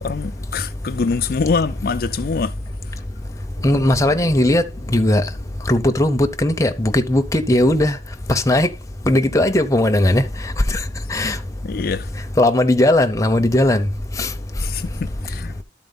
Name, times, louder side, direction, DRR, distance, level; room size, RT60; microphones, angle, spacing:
voice 1, 0.0-2.5 11.6-12.1 14.6-14.9 15.2-15.5, left 5 dB, 55° left, 0.4 m, -24 dB
voice 2, 3.6-4.6 4.9-5.2 5.7-8.0 8.3-8.7 9.1-10.2 10.7-10.8 11.1-11.4 12.4-13.9 14.2-14.3, left 1 dB, 15° left, 0.8 m, -17 dB
sound 1, 3.6-7.2, left 1 dB, 45° right, 2.2 m, -39 dB
12.0 x 4.4 x 4.0 m
head